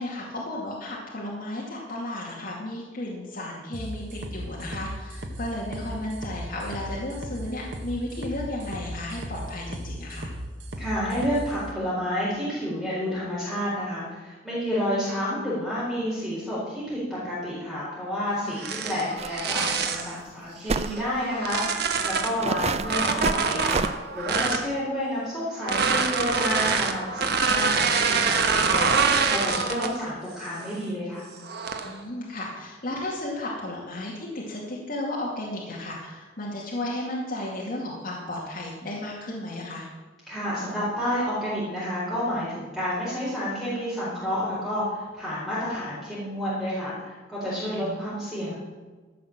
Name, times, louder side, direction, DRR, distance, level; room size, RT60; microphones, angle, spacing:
voice 1, 0.0-10.3 18.4-18.9 31.8-39.9 47.5-48.0, left 1 dB, 50° left, -4 dB, 2.4 m, -34 dB
sound 1, 3.7-11.5, right 1 dB, 85° right, 1.5 m, -36 dB
voice 2, 10.8-31.2 40.3-48.5, equal, ahead, -11 dB, 4.3 m, -30 dB
sound 2, 18.5-20.1 20.8-22.4 22.8-24.7 25.6-30.0 30.5-30.8 31.4-32.0, right 5 dB, 60° right, 1.2 m, -25 dB
sound 3, 19.2-19.3 19.6-19.7 20.7-21.0 21.7-21.8 22.4-23.9, right 4 dB, 35° right, 0.5 m, -28 dB
15.0 x 6.3 x 7.4 m, 1.4 s
head